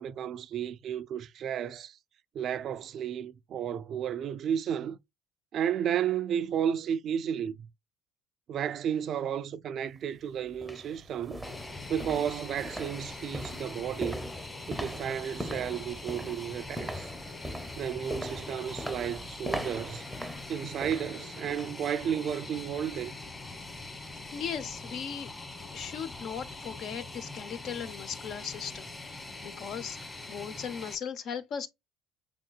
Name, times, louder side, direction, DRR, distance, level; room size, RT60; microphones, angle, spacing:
voice 1, 0.0-2.0 2.3-5.0 5.5-7.7 8.5-11.5 11.9-14.2 14.7-17.1 17.8-20.1 20.5-23.1, right 9 dB, 55° right, 0.3 m, -33 dB
sound 1, 9.9-10.0 10.5-21.8 22.2-22.4 22.9-23.0, equal, 5° right, 0.7 m, -40 dB
Fixed-wing aircraft airplane, 11.4-30.9, left 2 dB, 20° left, 1.5 m, -43 dB
voice 2, 24.3-25.3 25.7-30.0 30.3-31.7, left 7 dB, 55° left, 0.7 m, -38 dB
5.9 x 3.6 x 2.3 m
hypercardioid pair, 65°, 0 cm